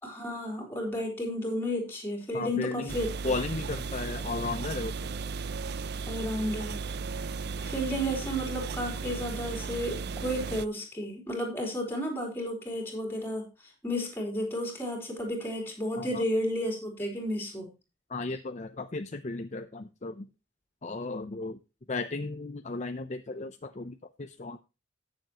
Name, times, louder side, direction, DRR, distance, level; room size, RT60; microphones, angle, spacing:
voice 1, 0.0-3.1 6.1-6.9 7.6-13.5 13.8-17.7, equal, 10° left, 1 dB, 3.7 m, -32 dB
voice 2, 2.3-3.0 3.2-5.0 16.0-16.2 18.1-20.3 20.8-21.6 21.9-24.6, left 3 dB, 35° left, 8 dB, 0.6 m, -35 dB
sound 1, 2.9-10.7, right 4 dB, 55° right, 0.5 m, -35 dB
18.0 x 7.1 x 3.0 m, 0.29 s
head